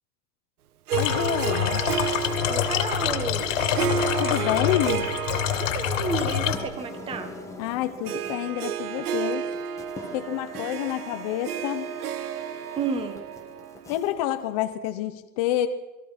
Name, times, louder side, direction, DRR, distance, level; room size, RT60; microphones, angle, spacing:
sound 1, 0.9-6.6, left 10 dB, 50° left, 2.4 m, -26 dB
Harp, 0.9-14.5, right 9 dB, 65° right, 2.0 m, -32 dB
voice 1, 1.0-1.8 4.2-5.2 7.6-9.5 10.1-11.9 13.9-15.7, left 13 dB, 25° left, 8 dB, 0.7 m, -28 dB
voice 2, 2.5-3.5 5.6-7.3 12.7-13.2, right 5 dB, 10° right, 9 dB, 1.3 m, -31 dB
sound 2, 5.8-14.1, left 1 dB, 5° left, 1.3 m, -43 dB
28.0 x 20.5 x 5.9 m, 1.1 s
supercardioid pair, 170°, 48 cm